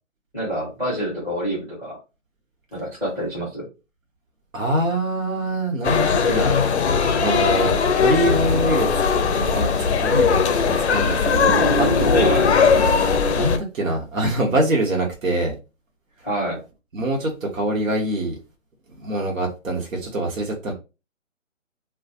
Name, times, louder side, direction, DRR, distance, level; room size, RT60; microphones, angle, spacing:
voice 1, 0.3-2.0 2.7-3.6 12.2-12.5 16.2-16.6, equal, 5° right, -8 dB, 0.5 m, -27 dB
voice 2, 4.5-6.6 7.2-8.9 9.2-12.4 12.9-15.5 16.9-18.4 19.0-20.7, right 1 dB, 80° right, 0 dB, 0.9 m, -24 dB
sound 1, 5.8-13.6, left 5 dB, 55° left, 0.5 m, -19 dB
sound 2, 8.2-13.4, right 9 dB, 60° right, 0.6 m, -32 dB
2.2 x 2.1 x 2.6 m, 0.29 s
figure-of-eight pair, 145°, 39 cm